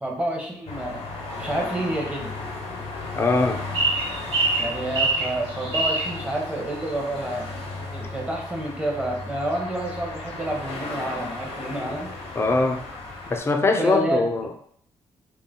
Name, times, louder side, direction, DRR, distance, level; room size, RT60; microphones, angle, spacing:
voice 1, 0.0-1.0 1.4-2.3 4.6-7.5 7.9-12.1 13.8-14.2, right 1 dB, 10° right, -1 dB, 0.7 m, -29 dB
sound 1, 0.7-13.4, left 3 dB, 85° left, 0.7 m, -35 dB
voice 2, 3.1-3.6 12.4-12.8 13.3-14.5, left 3 dB, 25° left, 5 dB, 0.4 m, -22 dB
sound 2, 3.7-6.1, right 2 dB, 85° right, 0.9 m, -23 dB
2.4 x 2.1 x 3.5 m, 0.63 s
cardioid pair, 100°, 10 cm